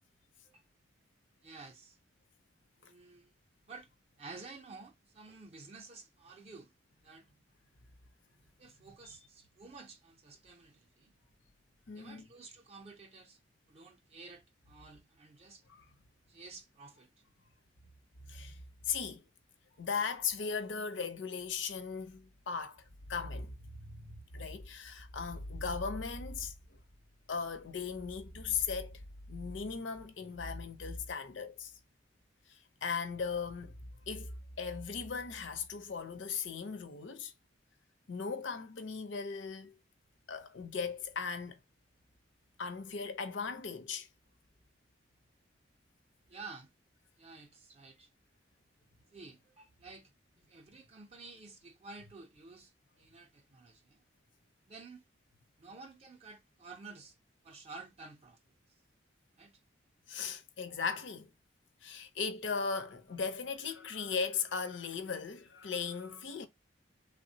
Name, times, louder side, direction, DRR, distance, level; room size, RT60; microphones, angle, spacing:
voice 1, 1.4-2.0 2.8-3.3 3.7-3.9 4.2-6.7 7.0-7.3 8.6-11.1 11.9-13.4 13.7-15.6 16.3-17.1 46.3-46.7 47.2-48.1 49.1-50.1 50.5-54.0 54.7-55.0 55.6-57.2 57.4-58.4 58.7-58.8 59.4-59.6, right 3 dB, 35° right, 0.4 m, -52 dB
voice 2, 11.9-12.2 15.7-15.8 18.3-19.2 19.8-26.8 27.3-29.0 29.3-31.7 32.5-33.7 34.1-34.3 34.6-37.3 38.1-39.8 40.3-41.6 42.6-44.1 60.1-61.3 61.8-66.5, left 5 dB, 80° left, 0.6 m, -38 dB
3.3 x 2.0 x 2.7 m
head